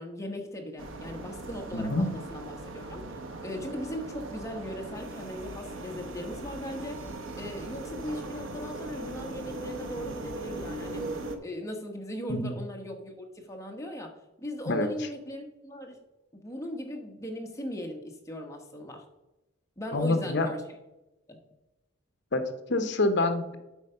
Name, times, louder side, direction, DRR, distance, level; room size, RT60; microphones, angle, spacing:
voice 1, 0.0-7.0 7.3-11.0 11.4-14.1 14.4-16.0 16.3-19.0 19.8-20.6 21.3-21.4, equal, 15° left, 2 dB, 1.0 m, -38 dB
sound 1, 0.8-11.4, right 2 dB, 65° right, 0.9 m, -39 dB
voice 2, 1.7-2.1 12.3-12.5 14.7-14.9 19.9-20.5 22.3-23.6, left 2 dB, 55° left, 8 dB, 0.9 m, -26 dB
8.1 x 4.7 x 5.5 m, 0.96 s
head